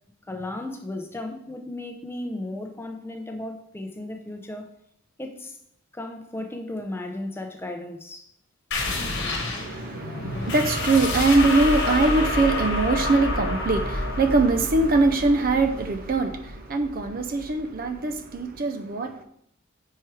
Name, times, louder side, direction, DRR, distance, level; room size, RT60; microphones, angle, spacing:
voice 1, 0.2-4.7 5.2-5.6 5.9-8.3, left 1 dB, 10° left, 0.5 m, -35 dB
sound 1, 8.7-17.9, left 2 dB, 55° left, 1.2 m, -28 dB
voice 2, 9.6-19.2, right 3 dB, 45° right, 0.4 m, -22 dB
4.6 x 4.5 x 4.7 m
head